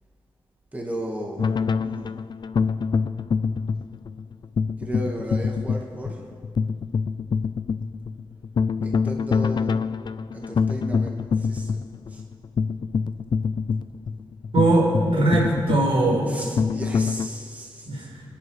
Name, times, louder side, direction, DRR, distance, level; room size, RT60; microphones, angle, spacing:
voice 1, 0.7-2.2 4.8-6.3 8.8-9.8 10.3-11.8 12.1-12.2 16.3-18.1, right 1 dB, 15° right, 0 dB, 1.6 m, -35 dB
sound 1, 1.4-17.3, left 5 dB, 55° left, 0.4 m, -26 dB
voice 2, 14.5-16.3 17.9-18.2, right 2 dB, 90° right, -2 dB, 4.7 m, -21 dB
27.0 x 10.5 x 4.8 m, 2.1 s
wide cardioid pair, 175°, 9 cm